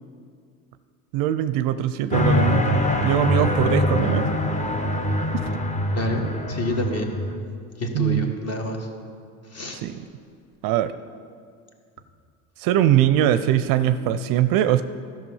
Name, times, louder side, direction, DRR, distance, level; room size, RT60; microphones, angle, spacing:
voice 1, 1.1-4.3 5.3-5.4 6.2-6.3 7.9-8.3 9.8-10.0 10.6-10.9 12.6-14.8, right 11 dB, 55° right, 12 dB, 0.5 m, -21 dB
sound 1, 2.1-7.4, left 2 dB, 15° left, 0.8 m, -23 dB
voice 2, 5.9-7.1 7.8-8.9 9.5-9.8, equal, 35° left, 3 dB, 1.5 m, -27 dB
13.0 x 5.9 x 5.5 m, 2.2 s
hypercardioid pair, 90°, 42 cm